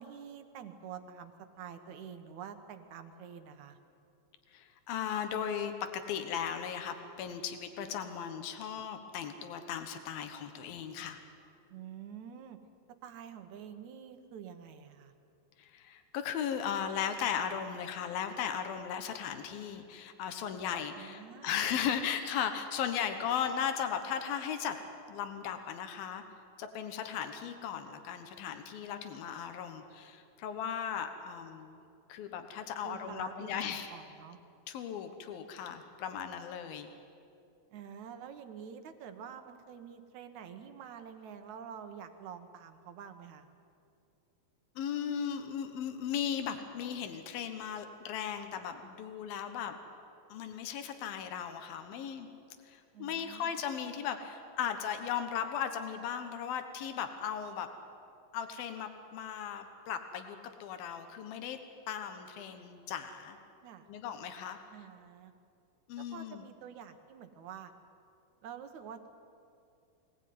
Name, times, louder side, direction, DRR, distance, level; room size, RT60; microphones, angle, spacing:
voice 1, 0.0-1.3 1.6-3.8 11.7-12.6 13.0-15.1 21.0-21.6 32.8-34.4 37.7-43.5 52.9-53.6 63.6-63.9 64.7-65.3 66.0-67.7 68.4-69.1, right 8 dB, 65° right, 8 dB, 2.3 m, -47 dB
voice 2, 4.5-11.2 15.6-24.8 25.1-26.2 26.6-31.8 32.1-33.9 34.7-36.9 44.8-49.8 50.3-52.3 52.6-57.7 58.3-61.6 61.9-63.4 63.9-64.6 65.9-66.4, left 8 dB, 85° left, 7 dB, 3.1 m, -37 dB
23.5 x 18.5 x 9.5 m, 2.6 s
omnidirectional pair, 4.1 m